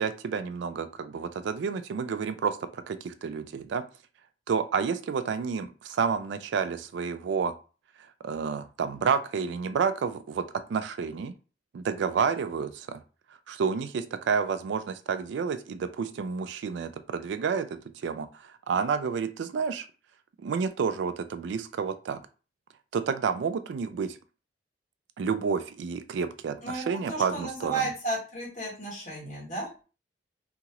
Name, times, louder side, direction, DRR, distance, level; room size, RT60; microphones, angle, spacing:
voice 1, 0.0-3.8 4.5-7.5 8.2-11.3 11.7-13.0 13.5-19.9 20.4-22.2 22.9-24.2 25.2-27.8, right 6 dB, 65° right, 11 dB, 0.3 m, -30 dB
voice 2, 26.6-29.8, right 2 dB, 40° left, -6 dB, 1.5 m, -33 dB
2.9 x 2.4 x 2.9 m, 0.35 s
head